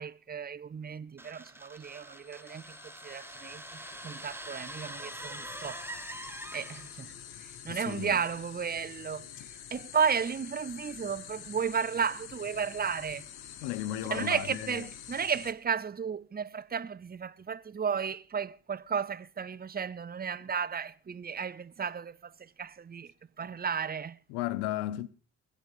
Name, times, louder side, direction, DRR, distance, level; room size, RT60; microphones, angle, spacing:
voice 1, 0.0-6.2 6.5-9.3 9.7-13.3 14.1-24.2, right 6 dB, 25° right, 0.7 m, -34 dB
sound 1, 1.2-7.1, right 1 dB, 5° right, 1.1 m, -44 dB
sound 2, 1.9-15.5, left 9 dB, 65° left, 1.3 m, -48 dB
voice 2, 7.7-8.2 9.4-9.5 13.6-14.9 24.3-25.1, left 14 dB, 85° left, 0.8 m, -35 dB
22.0 x 8.3 x 5.5 m
hypercardioid pair, 55°, 41 cm